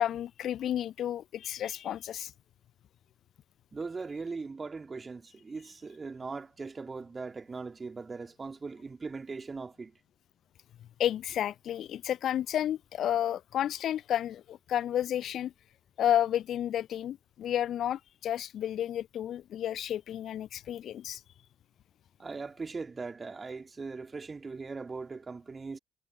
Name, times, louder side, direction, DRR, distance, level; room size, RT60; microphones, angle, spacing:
voice 1, 0.0-2.3 11.0-15.5 16.0-21.2, left 11 dB, 55° left, 0.4 m, -31 dB
voice 2, 3.7-10.0 22.2-25.8, right 4 dB, 30° right, 2.6 m, -40 dB
figure-of-eight pair, 50°, 0 cm